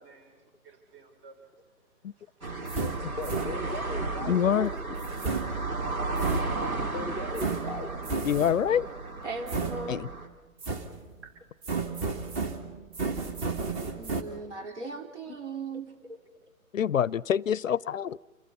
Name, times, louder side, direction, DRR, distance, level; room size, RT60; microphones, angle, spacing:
voice 1, 0.0-2.5, right 4 dB, 40° right, 6 dB, 6.0 m, -56 dB
sound 1, 2.4-4.0 5.0-6.9 7.4-8.8 9.5-10.3 10.6-11.2 11.6-14.2, right 4 dB, 20° right, 1.9 m, -33 dB
sound 2, 2.4-10.3, right 3 dB, 75° right, 3.3 m, -34 dB
voice 2, 3.2-4.7 6.9-8.2 8.6-8.7, left 2 dB, 5° right, 3 dB, 0.8 m, -38 dB
voice 3, 4.3-4.7 8.2-8.9 9.9-10.1 16.7-18.2, left 9 dB, 65° left, 23 dB, 0.6 m, -26 dB
voice 4, 9.2-10.0 13.9-16.2, right 3 dB, 55° right, 4 dB, 4.4 m, -38 dB
28.5 x 22.0 x 5.6 m, 1.2 s
figure-of-eight pair, 140°, 43 cm